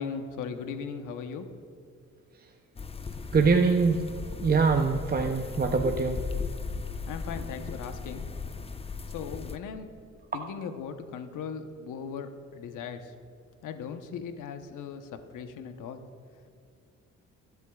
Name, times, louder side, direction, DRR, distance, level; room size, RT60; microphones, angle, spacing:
voice 1, 0.0-1.5 7.1-8.3 9.1-9.9 10.3-13.2 13.6-16.0, left 6 dB, 80° left, 7 dB, 1.0 m, -38 dB
sound 1, 2.8-9.6, left 4 dB, 20° left, 0.6 m, -37 dB
voice 2, 3.3-4.0 4.4-6.2, right 4 dB, 30° right, 4 dB, 0.7 m, -23 dB
22.5 x 8.2 x 2.4 m, 2.3 s
cardioid pair, 75°, 31 cm